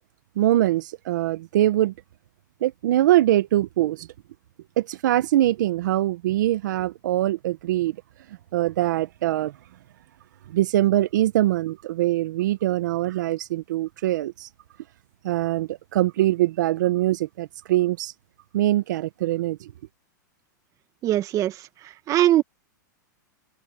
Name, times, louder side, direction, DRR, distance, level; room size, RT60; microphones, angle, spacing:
voice 1, 0.4-1.9 2.6-4.1 4.8-7.9 8.5-9.5 10.5-14.5 15.2-18.1 18.5-19.7, right 14 dB, 70° right, 1.3 m, -23 dB
voice 2, 21.0-21.5 22.1-22.4, right 13 dB, 30° right, 2.1 m, -20 dB
hypercardioid pair, 130°, 10 cm